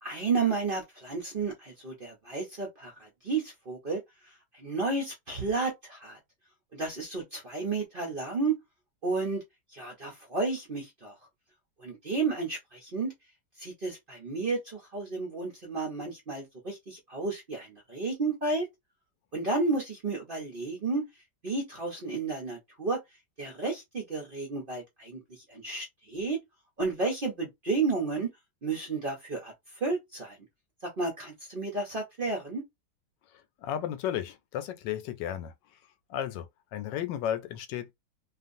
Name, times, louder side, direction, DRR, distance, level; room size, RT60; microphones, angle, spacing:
voice 1, 0.0-4.0 4.3-6.2 6.7-8.6 9.0-9.4 9.7-11.1 11.8-13.1 13.6-18.7 19.3-21.0 21.4-23.0 23.4-26.4 26.8-28.3 28.6-29.5 29.8-30.4 31.0-32.6, right 3 dB, 50° right, 0.7 m, -32 dB
voice 2, 33.6-35.5 36.1-37.9, left 10 dB, 90° left, 1.3 m, -33 dB
2.8 x 2.5 x 2.6 m
omnidirectional pair, 1.9 m